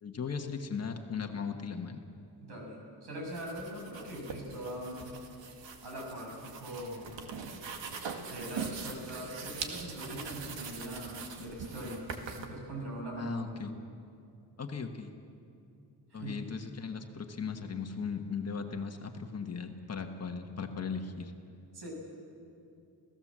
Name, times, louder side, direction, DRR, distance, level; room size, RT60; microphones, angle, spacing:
voice 1, 0.0-2.0 13.1-13.7 14.6-15.1 16.1-21.3, left 5 dB, 35° left, 4 dB, 1.4 m, -37 dB
voice 2, 2.4-5.1 5.8-7.1 8.3-12.1 12.4-13.5 16.1-16.4 21.7-21.9, equal, 65° right, 0 dB, 6.8 m, -41 dB
sound 1, 3.2-12.5, right 5 dB, 85° right, 2.1 m, -42 dB
29.5 x 16.5 x 7.5 m, 2.6 s
wide cardioid pair, 170°, 43 cm